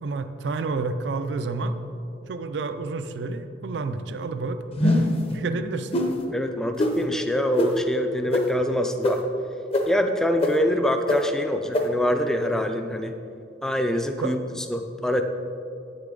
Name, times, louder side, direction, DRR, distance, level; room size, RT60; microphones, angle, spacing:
voice 1, 0.0-1.8 2.3-5.9 14.2-14.3, right 3 dB, 70° right, 9 dB, 0.4 m, -30 dB
sound 1, 4.8-5.2 5.9-6.1 6.8-6.9 7.6-7.7 8.3-8.4 9.0-9.1 9.7-9.8 10.4-10.5 11.1-11.2 11.7-11.8, left 1 dB, 30° left, 0.7 m, -21 dB
voice 2, 6.3-9.2 9.9-13.2 13.6-14.4 14.7-15.2, left 1 dB, 5° left, 6 dB, 0.3 m, -25 dB
8.7 x 6.7 x 3.8 m, 2.6 s
head